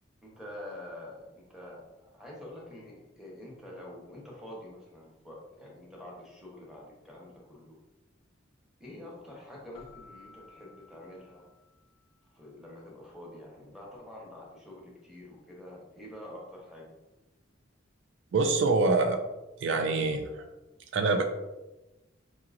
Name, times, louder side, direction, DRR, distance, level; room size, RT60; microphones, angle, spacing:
voice 1, 0.2-7.8 8.8-11.4 12.3-17.0, left 1 dB, 5° right, -5 dB, 0.8 m, -47 dB
Keyboard (musical), 9.7-12.1, left 4 dB, 30° left, 0.6 m, -56 dB
voice 2, 18.3-19.2 19.6-20.4 20.9-21.2, right 3 dB, 65° right, 6 dB, 0.3 m, -25 dB
4.8 x 2.9 x 2.5 m, 1.0 s
head